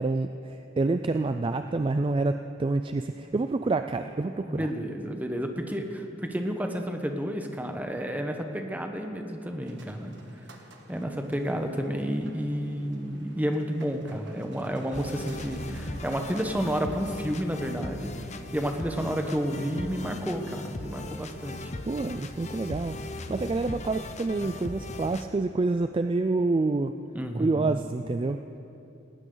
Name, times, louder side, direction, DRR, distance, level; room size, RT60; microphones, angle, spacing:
voice 1, 0.0-4.7 21.9-26.9 27.3-28.4, right 3 dB, 25° right, 8 dB, 0.3 m, -28 dB
voice 2, 4.5-10.1 10.9-18.1 18.5-21.7 27.1-27.7, equal, 10° right, 4 dB, 1.1 m, -31 dB
sound 1, 9.6-17.3, right 2 dB, 70° right, 1.5 m, -50 dB
sound 2, 14.9-25.3, left 2 dB, 35° left, 0.8 m, -38 dB
18.5 x 18.5 x 3.9 m, 2.8 s
head